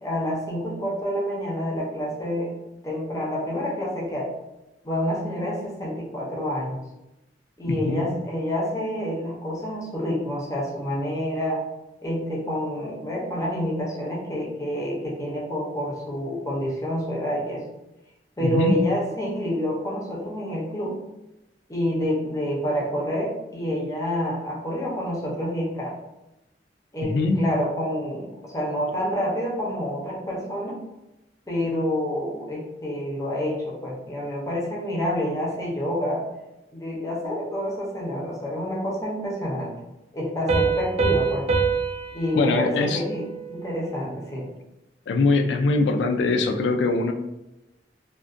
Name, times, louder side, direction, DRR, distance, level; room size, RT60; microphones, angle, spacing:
voice 1, 0.0-2.5 2.8-4.3 4.8-6.8 7.6-11.6 12.0-17.6 18.4-21.0 21.7-25.9 26.9-30.8 31.5-36.2 36.7-39.7 40.1-41.5 42.1-44.5, equal, 20° left, -4 dB, 0.5 m, -28 dB
voice 2, 7.7-8.1 18.4-18.8 27.0-27.4 42.4-43.0 45.1-47.1, left 3 dB, 85° left, 5 dB, 0.3 m, -22 dB
Piano, 40.5-43.9, right 5 dB, 35° right, 0.3 m, -26 dB
2.3 x 2.1 x 2.5 m, 0.93 s
head